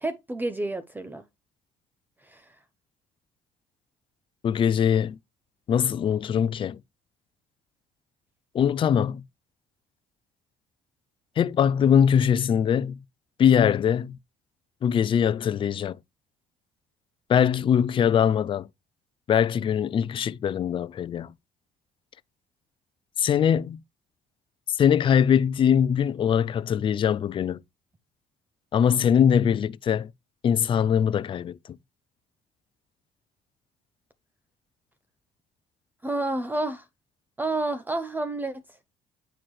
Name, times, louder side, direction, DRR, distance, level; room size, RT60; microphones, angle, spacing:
voice 1, 0.0-1.2 2.3-2.4 36.0-36.8 37.4-38.6, right 2 dB, 15° right, 0.6 m, -29 dB
voice 2, 4.4-5.2 5.7-6.8 8.5-9.2 11.4-13.0 13.4-14.2 14.8-16.0 17.3-18.7 19.3-21.3 23.2-23.8 24.8-27.6 28.7-30.1 30.4-31.6, left 8 dB, 40° left, 0.4 m, -22 dB
9.0 x 4.4 x 3.1 m
cardioid pair, 95°, 14 cm